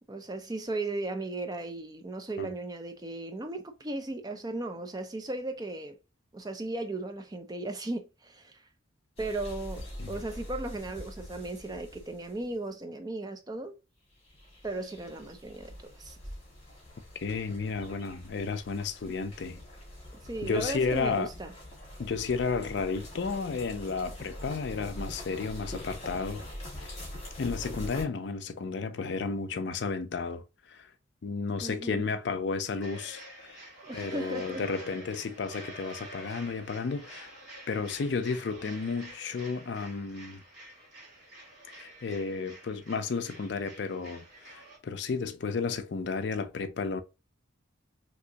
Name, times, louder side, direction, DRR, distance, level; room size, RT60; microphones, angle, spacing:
voice 1, 0.1-5.9 6.3-8.6 9.2-13.7 14.6-16.2 19.0-19.1 20.2-21.5 31.6-32.0 33.8-34.6, right 2 dB, 20° right, 0.4 m, -36 dB
sound 1, 9.2-12.4 14.2-28.0, left 1 dB, 30° left, 1.7 m, -44 dB
voice 2, 17.1-19.6 20.4-21.3 22.0-26.4 26.8-26.9 27.4-30.9 31.2-33.6 33.9-37.3 37.7-40.4 41.7-47.0, left 4 dB, 60° left, 0.4 m, -33 dB
sound 2, 32.8-44.8, right 1 dB, 45° right, 2.0 m, -48 dB
3.5 x 2.9 x 2.8 m
head